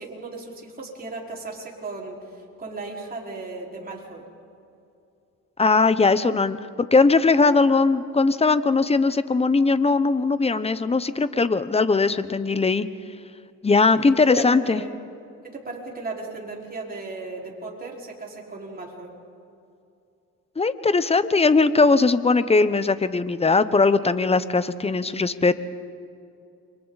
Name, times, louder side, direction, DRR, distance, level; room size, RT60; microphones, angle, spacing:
voice 1, 0.0-4.2 13.9-14.0 14.3-15.0 15.4-19.1, right 3 dB, 30° right, -2 dB, 4.8 m, -36 dB
voice 2, 5.6-12.9 13.6-14.8 20.6-25.5, left 4 dB, 20° left, 13 dB, 0.9 m, -20 dB
29.5 x 24.0 x 4.1 m, 2.6 s
cardioid pair, 90°, 30 cm